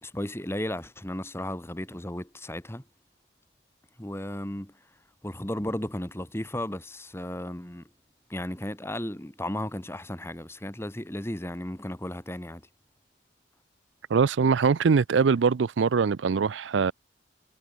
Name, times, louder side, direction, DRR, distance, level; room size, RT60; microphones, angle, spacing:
voice 1, 0.0-2.8 4.0-4.7 5.2-7.8 8.3-12.6, left 1 dB, 15° left, 2.0 m, -34 dB
voice 2, 14.1-16.9, right 5 dB, 85° right, 0.5 m, -22 dB
head